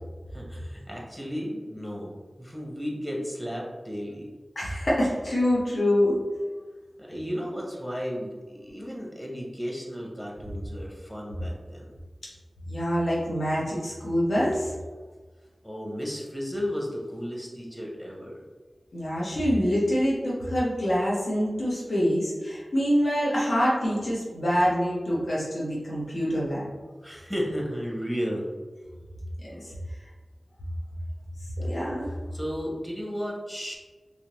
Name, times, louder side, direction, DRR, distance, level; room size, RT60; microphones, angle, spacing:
voice 1, 0.3-2.1 2.4-4.3 7.0-11.9 15.6-18.4 27.0-28.5 32.3-33.7, equal, 15° left, -2 dB, 0.8 m, -34 dB
voice 2, 4.5-6.1 12.7-14.7 18.9-26.6 29.4-29.7 31.6-32.1, equal, 80° left, -7 dB, 1.0 m, -25 dB
3.3 x 2.8 x 3.0 m, 1.4 s
wide cardioid pair, 70°, 0 cm